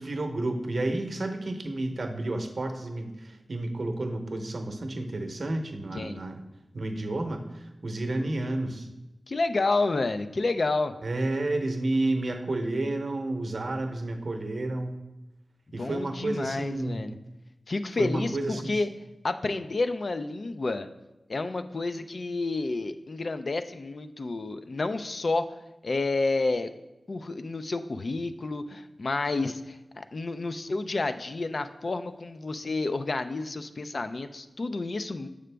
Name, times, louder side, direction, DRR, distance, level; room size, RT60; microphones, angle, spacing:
voice 1, 0.0-6.4 6.7-8.9 11.0-15.0 15.7-17.0 18.0-18.8, right 2 dB, 70° right, 5 dB, 0.8 m, -31 dB
voice 2, 9.3-11.0 15.8-17.2 17.7-18.9 19.2-20.9 21.3-25.5 25.8-26.7 27.1-35.3, left 3 dB, 65° left, 9 dB, 0.4 m, -30 dB
6.7 x 4.9 x 3.4 m, 1.0 s
cardioid pair, 45°, 0 cm